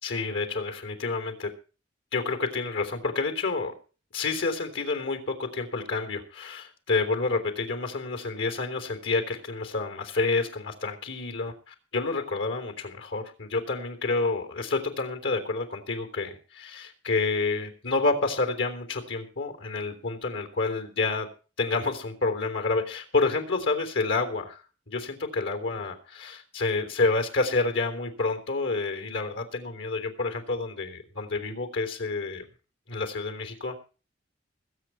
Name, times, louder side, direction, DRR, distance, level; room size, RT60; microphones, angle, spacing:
voice 1, 0.0-1.5 2.1-3.7 4.1-21.3 21.6-32.4 32.9-33.8, left 3 dB, 90° left, 6 dB, 3.5 m, -29 dB
21.5 x 8.8 x 4.4 m, 0.35 s
head